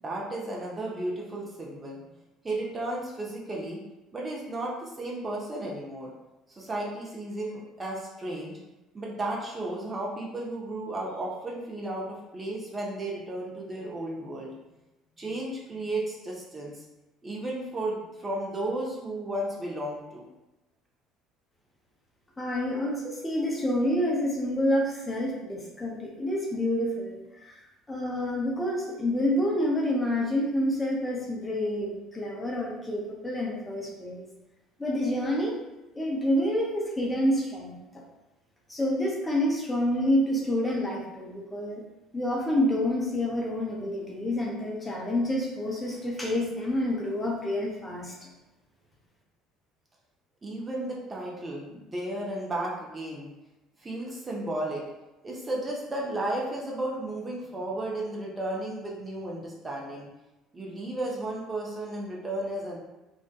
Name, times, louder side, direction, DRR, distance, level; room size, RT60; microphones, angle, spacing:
voice 1, 0.0-2.0 2.4-3.8 4.1-6.1 6.5-8.6 8.9-14.5 15.2-16.8 17.2-20.2 50.4-53.3 53.8-54.8 55.2-60.1 60.5-62.8, right 1 dB, 25° right, -4 dB, 0.6 m, -34 dB
voice 2, 22.4-27.2 27.9-34.3 34.8-35.6 35.9-38.0 38.7-41.8 42.1-48.3, left 1 dB, 15° left, -3 dB, 0.6 m, -28 dB
2.5 x 2.2 x 2.4 m, 1.0 s
figure-of-eight pair, 55°, 0 cm